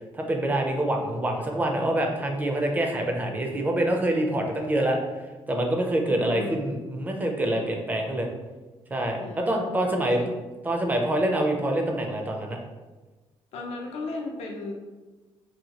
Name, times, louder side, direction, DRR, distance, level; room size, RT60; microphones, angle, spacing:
voice 1, 0.1-5.0 5.5-8.3 8.9-10.2 10.7-12.6, right 1 dB, 15° right, 2 dB, 0.4 m, -26 dB
voice 2, 6.1-6.7 9.2-9.8 10.2-10.4 13.5-14.7, left 3 dB, 80° left, 0 dB, 0.4 m, -36 dB
2.7 x 2.2 x 2.8 m, 1.2 s
cardioid pair, 135°, 10 cm